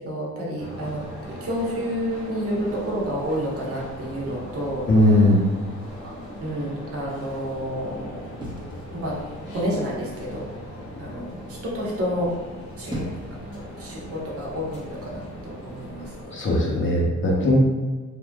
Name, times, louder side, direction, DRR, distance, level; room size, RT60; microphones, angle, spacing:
voice 1, 0.1-5.3 6.0-6.1 6.4-8.2 8.9-9.2 9.5-10.5 11.0-12.3 12.8-13.1 13.8-16.4, equal, 50° right, -5 dB, 1.1 m, -30 dB
sound 1, 0.6-16.3, equal, 90° left, 1.3 m, -39 dB
voice 2, 4.9-5.5 16.3-17.6, left 1 dB, 40° left, -2 dB, 0.8 m, -19 dB
sound 2, 8.4-9.4 10.1-10.5 12.5-13.4 14.4-14.7, equal, 15° right, 0.9 m, -37 dB
3.4 x 2.6 x 2.3 m, 1.3 s
cardioid pair, 90°, 30 cm